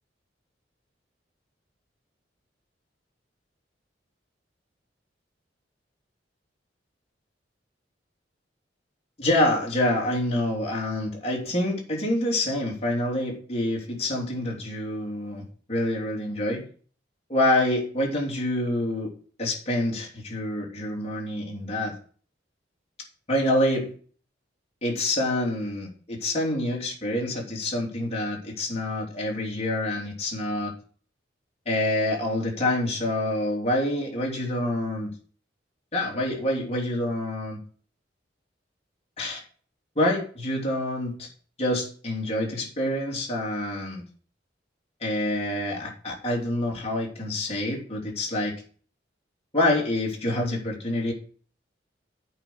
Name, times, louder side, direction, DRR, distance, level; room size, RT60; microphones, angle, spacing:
voice 1, 9.2-16.7 17.3-19.1 19.4-21.9 23.3-23.9 24.8-30.7 31.6-35.1 35.9-37.6 39.2-39.4 39.9-41.3 41.6-44.0 45.0-48.5 49.5-51.1, left 1 dB, 35° left, 3.1 m, -27 dB
8.6 x 5.4 x 7.8 m
head